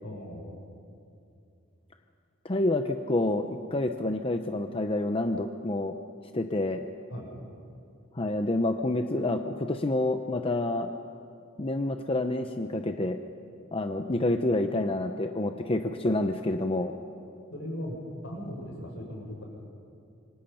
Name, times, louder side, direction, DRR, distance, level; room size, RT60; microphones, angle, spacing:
voice 1, 0.0-0.6 7.1-7.4 17.5-18.0 18.2-19.5, equal, 70° left, -1 dB, 6.9 m, -38 dB
voice 2, 2.4-5.9 6.3-6.8 8.1-10.9 11.6-13.2 13.7-16.9, left 2 dB, 25° left, 6 dB, 0.8 m, -28 dB
26.5 x 24.5 x 5.7 m, 2.6 s
head